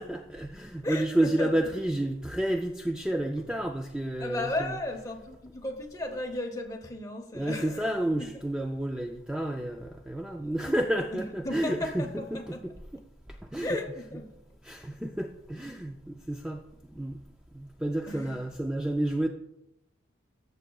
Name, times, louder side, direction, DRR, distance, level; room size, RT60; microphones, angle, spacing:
voice 1, 0.0-4.7 7.3-13.0 13.5-13.8 14.6-16.6 17.0-17.2 17.5-19.3, right 1 dB, 5° right, 0.3 m, -30 dB
voice 2, 0.8-1.7 3.4-3.5 4.2-8.3 11.1-12.6 13.6-14.4 18.1-18.4, left 1 dB, 20° left, 0.9 m, -35 dB
14.0 x 6.7 x 2.3 m
head